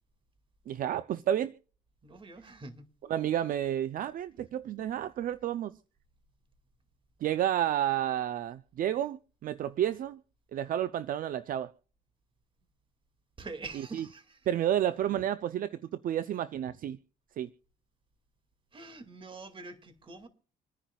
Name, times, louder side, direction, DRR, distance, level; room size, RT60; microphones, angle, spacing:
voice 1, 0.7-1.5 3.1-5.8 7.2-10.2 10.5-11.7 13.9-14.0 14.5-15.8 16.0-17.0 17.4-17.5, right 11 dB, 60° right, 0.5 m, -30 dB
voice 2, 2.0-2.8 13.4-14.5 18.7-20.3, right 3 dB, 30° right, 2.2 m, -45 dB
27.0 x 10.0 x 2.3 m
cardioid pair, 90°, 16 cm